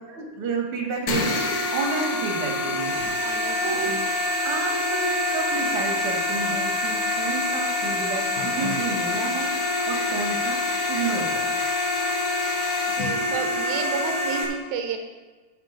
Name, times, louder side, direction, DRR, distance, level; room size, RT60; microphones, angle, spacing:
voice 1, 0.1-1.4 1.7-2.9 3.6-3.9 4.4-9.5 9.9-10.6 10.9-11.5, right 4 dB, 45° right, 1 dB, 2.1 m, -30 dB
sound 1, 1.1-14.5, left 2 dB, 70° left, 2.9 m, -26 dB
voice 2, 3.2-3.9 12.8-15.0, right 6 dB, 80° right, 5 dB, 2.5 m, -32 dB
9.6 x 7.7 x 5.2 m, 1.3 s
omnidirectional pair, 4.3 m